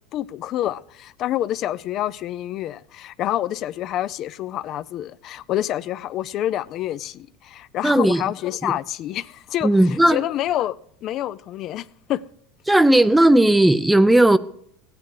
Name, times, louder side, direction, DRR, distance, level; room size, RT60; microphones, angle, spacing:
voice 1, 0.1-12.2, left 12 dB, 50° left, 0.4 m, -27 dB
voice 2, 7.8-8.2 8.6-8.7 9.6-10.2 12.7-14.4, right 1 dB, 5° right, 0.5 m, -15 dB
14.5 x 9.5 x 4.8 m
supercardioid pair, 115°, 0 cm